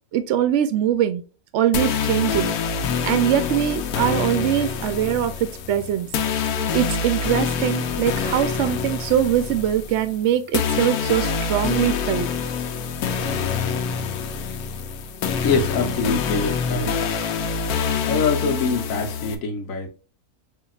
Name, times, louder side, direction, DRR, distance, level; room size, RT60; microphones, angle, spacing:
voice 1, 0.1-1.2 1.5-2.5 3.0-6.1 6.7-12.3, right 10 dB, 65° right, 0.7 m, -22 dB
sound 1, 1.7-19.3, left 6 dB, 90° left, 1.2 m, -26 dB
voice 2, 15.4-17.4 17.8-19.9, left 4 dB, 65° left, 1.3 m, -25 dB
6.9 x 2.9 x 2.4 m
omnidirectional pair, 1.5 m